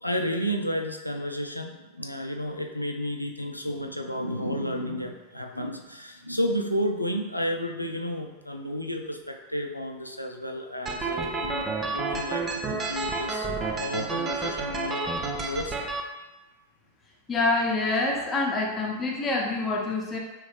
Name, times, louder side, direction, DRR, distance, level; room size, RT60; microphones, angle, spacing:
voice 1, 0.0-15.8, equal, 90° left, 3 dB, 0.3 m, -32 dB
sound 1, 10.9-16.0, right 3 dB, 25° right, 0.4 m, -30 dB
voice 2, 17.3-20.2, left 3 dB, 20° left, -2 dB, 0.8 m, -26 dB
3.1 x 3.1 x 3.2 m, 1.1 s
figure-of-eight pair, 90°, 0 cm